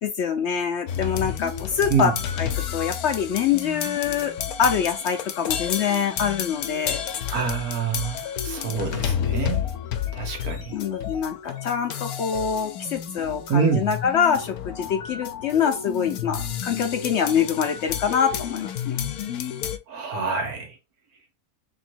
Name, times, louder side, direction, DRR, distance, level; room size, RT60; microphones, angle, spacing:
voice 1, 0.0-2.1 2.4-4.3 4.6-7.0 10.7-19.0, left 7 dB, 60° left, 0.8 m, -25 dB
sound 1, 0.9-19.8, left 9 dB, 90° left, 1.1 m, -31 dB
voice 2, 1.9-2.2 7.3-9.6 10.1-10.8 13.5-13.9 19.9-20.8, right 6 dB, 80° right, 1.7 m, -26 dB
3.5 x 3.2 x 4.3 m
omnidirectional pair, 1.5 m